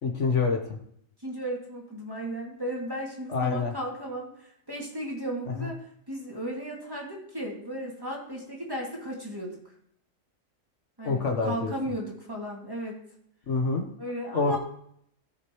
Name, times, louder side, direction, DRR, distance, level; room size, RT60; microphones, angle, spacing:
voice 1, 0.0-0.8 3.3-3.7 5.5-5.7 11.0-11.7 13.5-13.8 14.3-14.6, left 4 dB, 65° left, 2 dB, 1.4 m, -26 dB
voice 2, 1.2-5.8 6.1-9.6 11.0-13.0 14.0-14.6, right 1 dB, 15° right, -3 dB, 2.2 m, -35 dB
17.0 x 6.5 x 3.1 m, 0.71 s
omnidirectional pair, 1.4 m